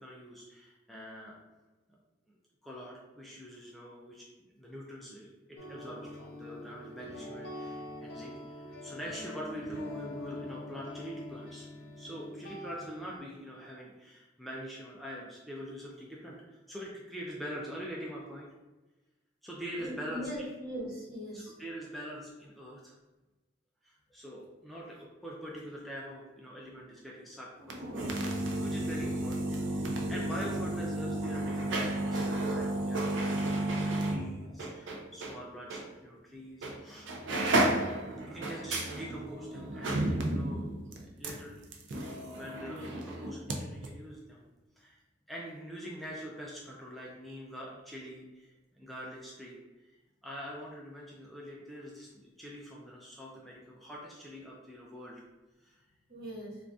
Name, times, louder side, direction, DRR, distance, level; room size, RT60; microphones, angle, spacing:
voice 1, 0.0-1.4 2.6-4.3 4.5-11.7 12.0-18.5 19.4-20.5 21.3-22.9 23.8-37.1 38.3-41.6 42.0-44.4 44.8-45.0 45.3-49.9 50.2-55.2 55.6-55.8, equal, ahead, -5 dB, 0.3 m, -44 dB
sound 1, 5.6-13.2, left 1 dB, 55° left, 0.6 m, -44 dB
voice 2, 19.8-21.5 30.0-30.2 34.4-34.5 56.1-56.6, equal, 55° right, -6 dB, 1.1 m, -40 dB
sound 2, 27.6-35.4 35.7-35.8 36.6-36.8 37.1-43.6 43.8-43.9, right 1 dB, 80° right, 0.4 m, -32 dB
3.7 x 2.3 x 2.3 m, 1.1 s
head